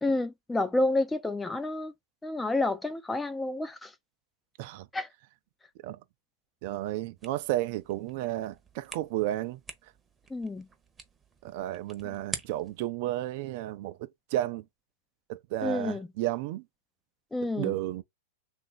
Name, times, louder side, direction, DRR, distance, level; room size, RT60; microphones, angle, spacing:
voice 1, 0.0-1.9 2.2-3.9 4.9-5.1 10.3-10.7 15.6-16.1 17.3-17.7, left 2 dB, 10° left, 0.4 m, -29 dB
voice 2, 6.6-9.6 11.4-14.6 15.3-16.6 17.6-18.0, right 14 dB, 55° right, 0.5 m, -32 dB
sound 1, 7.2-12.9, right 4 dB, 15° right, 0.8 m, -46 dB
3.0 x 2.4 x 3.9 m
hypercardioid pair, 120°, 0 cm